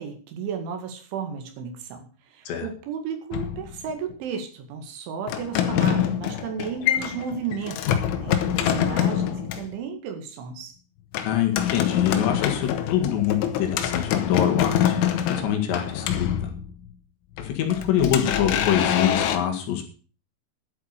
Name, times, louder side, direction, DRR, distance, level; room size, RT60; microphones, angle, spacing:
voice 1, 0.0-10.8, right 6 dB, 75° right, 5 dB, 4.3 m, -34 dB
sound 1, 3.3-4.1 5.3-9.7 11.1-16.9 17.4-19.4, left 10 dB, 85° left, 3.7 m, -25 dB
voice 2, 11.2-16.5 17.4-19.9, left 9 dB, 70° left, 4 dB, 4.0 m, -25 dB
11.5 x 8.4 x 6.7 m, 0.40 s
omnidirectional pair, 5.5 m